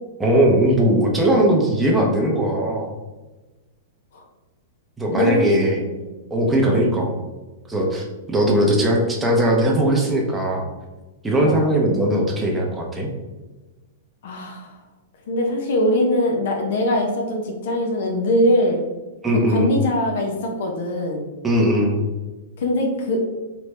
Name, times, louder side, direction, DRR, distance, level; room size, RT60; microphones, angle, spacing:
voice 1, 0.2-2.9 5.0-5.8 6.3-7.2 7.7-10.7 11.2-13.1 19.2-19.7 21.4-22.1, right 1 dB, 10° right, -1 dB, 0.7 m, -19 dB
voice 2, 5.1-6.0 6.6-6.9 11.4-11.7 14.2-14.8 15.3-18.8 19.5-21.3 22.6-23.2, left 1 dB, 70° left, 1 dB, 0.6 m, -22 dB
3.2 x 2.5 x 3.2 m, 1.2 s
hypercardioid pair, 130°, 0 cm